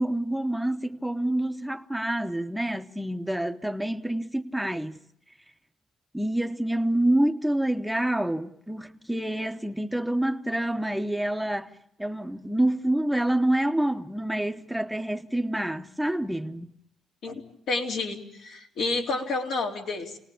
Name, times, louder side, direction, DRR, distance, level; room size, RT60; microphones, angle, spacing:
voice 1, 0.0-5.0 6.1-11.7 12.0-16.7, right 1 dB, 5° right, 0.9 m, -27 dB
voice 2, 17.2-20.2, left 3 dB, 75° left, 3.7 m, -30 dB
29.0 x 19.0 x 8.6 m
cardioid pair, 90°, 0 cm